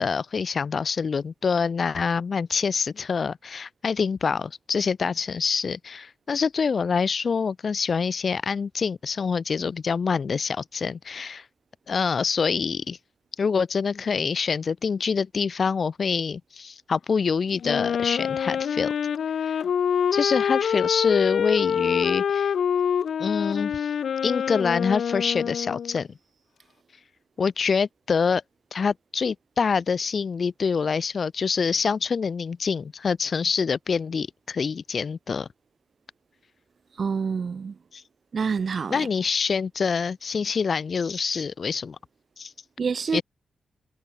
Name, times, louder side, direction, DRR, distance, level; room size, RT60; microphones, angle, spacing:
voice 1, 0.0-11.4 11.9-13.0 13.4-18.9 19.4-19.6 20.1-22.5 23.2-23.9 24.2-26.1 27.4-28.4 28.7-35.5 37.9-38.0 38.9-42.0 42.4-42.5 43.1-43.2, left 5 dB, 50° left, 4.1 m, -26 dB
Wind instrument woodwind instrument, 17.6-26.0, left 8 dB, 85° left, 7.3 m, -26 dB
voice 2, 37.0-37.8 38.3-39.1 42.8-43.2, right 5 dB, 50° right, 1.7 m, -27 dB
wide cardioid pair, 140°, 0 cm